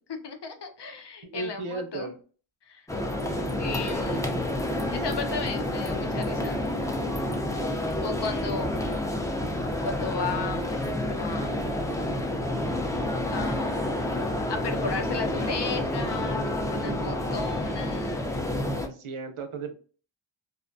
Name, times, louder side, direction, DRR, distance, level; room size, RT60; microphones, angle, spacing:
voice 1, 0.1-2.1 2.7-2.9 3.6-4.3 4.9-6.6 8.0-9.1 9.8-11.7 13.3-14.2 14.5-18.4, left 4 dB, 60° left, 5 dB, 0.6 m, -35 dB
voice 2, 1.2-2.1 4.1-4.2 4.9-5.2 16.4-17.1 18.8-19.7, right 3 dB, 85° right, 6 dB, 0.6 m, -36 dB
sound 1, 2.9-18.9, left 1 dB, 5° left, 0.4 m, -29 dB
2.5 x 2.1 x 2.5 m, 0.40 s
wide cardioid pair, 65°, 48 cm